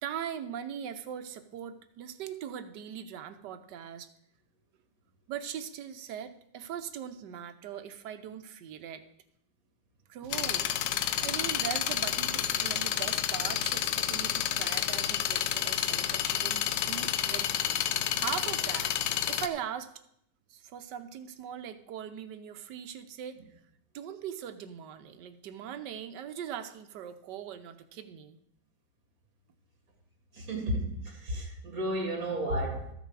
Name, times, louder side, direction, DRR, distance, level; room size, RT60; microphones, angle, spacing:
voice 1, 0.0-4.1 5.3-9.0 10.1-10.7 11.0-17.5 18.1-18.9 19.3-19.9 20.5-23.4 23.9-28.4, right 9 dB, 85° right, 1.4 m, -40 dB
sound 1, 10.3-19.5, left 10 dB, 85° left, 1.2 m, -30 dB
voice 2, 30.3-32.9, right 1 dB, 55° right, 2.8 m, -32 dB
13.5 x 6.6 x 4.8 m
omnidirectional pair, 1.8 m